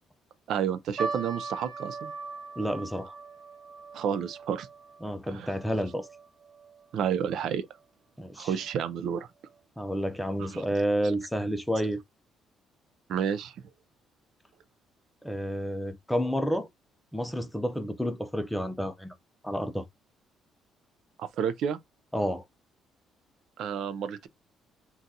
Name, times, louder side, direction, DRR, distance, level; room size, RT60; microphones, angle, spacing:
voice 1, 0.5-2.1 3.9-4.7 5.3-5.5 6.9-7.7 8.4-9.3 10.4-10.6 13.1-13.5 21.2-21.8 23.6-24.3, right 8 dB, 65° right, 0.4 m, -30 dB
sound 1, 1.0-7.5 7.7-7.8 8.6-8.9 9.5-9.6 9.9-10.1, right 4 dB, 40° right, 1.6 m, -40 dB
voice 2, 2.6-3.2 5.0-6.1 8.2-8.6 9.8-12.0 15.2-16.7 17.1-19.1 19.4-19.9 22.1-22.4, equal, 5° left, 0.4 m, -30 dB
3.8 x 2.3 x 2.6 m
cardioid pair, 140°, 0 cm